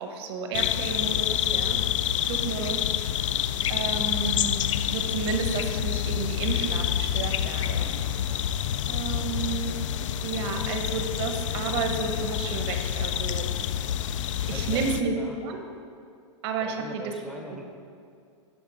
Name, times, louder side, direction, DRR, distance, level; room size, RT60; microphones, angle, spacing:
voice 1, 0.0-1.8 2.3-2.9 3.7-4.6 4.9-7.9 8.9-9.7 10.2-13.5 14.5-15.1 15.4-15.6 16.4-17.1 17.6-17.7, right 5 dB, 55° right, 5 dB, 1.0 m, -31 dB
sound 1, 0.5-15.0, left 10 dB, 80° left, 0.4 m, -28 dB
voice 2, 14.5-15.4 16.6-17.6, right 1 dB, ahead, 0 dB, 0.6 m, -41 dB
11.0 x 3.8 x 5.0 m, 2.3 s
hypercardioid pair, 140°, 16 cm